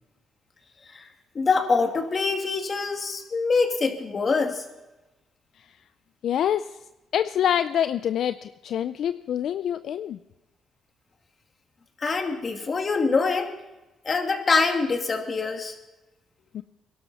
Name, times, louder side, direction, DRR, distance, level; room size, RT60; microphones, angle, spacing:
voice 1, 1.3-4.6 12.0-13.5 14.0-15.7, left 4 dB, 40° left, 4 dB, 2.3 m, -24 dB
voice 2, 6.2-6.8 7.1-10.2 16.5-16.6, left 9 dB, 70° left, 12 dB, 0.4 m, -26 dB
22.0 x 12.0 x 4.2 m, 1.0 s
cardioid pair, 90°, 0 cm